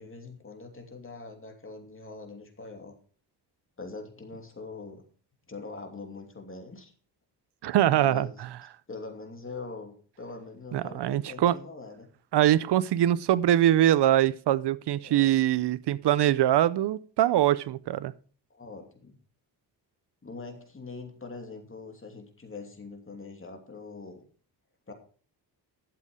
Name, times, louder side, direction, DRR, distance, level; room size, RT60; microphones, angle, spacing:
voice 1, 0.0-3.0 3.8-5.0 5.5-6.9 7.9-8.4 8.9-12.1 15.0-15.4 18.5-19.2 20.2-24.2 24.9-25.0, left 3 dB, 30° left, 2.7 m, -43 dB
voice 2, 7.6-8.3 10.7-11.6 12.3-18.1, right 12 dB, 75° right, 0.6 m, -23 dB
12.5 x 7.4 x 4.9 m
cardioid pair, 95°, 41 cm